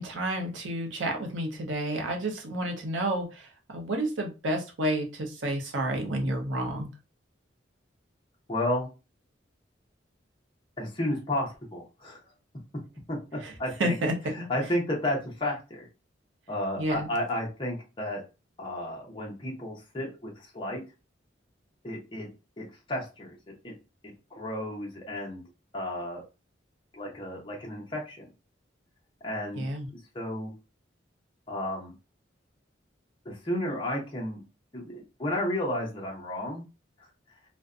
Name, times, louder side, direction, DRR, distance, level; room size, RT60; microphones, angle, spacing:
voice 1, 0.0-6.9 13.4-13.5 13.8-14.1 16.8-17.1 29.6-29.9, right 1 dB, 80° right, 2 dB, 0.7 m, -30 dB
voice 2, 8.5-8.9 10.8-12.2 13.1-14.0 14.3-15.9 16.5-18.2 18.6-20.8 21.8-22.3 22.6-23.4 23.6-23.7 24.4-25.4 25.7-26.2 26.9-28.2 29.2-29.7 29.9-30.5 31.5-31.9 33.2-34.4 34.7-36.6, left 1 dB, 25° left, -2 dB, 0.6 m, -32 dB
2.5 x 2.1 x 2.3 m, 0.30 s
head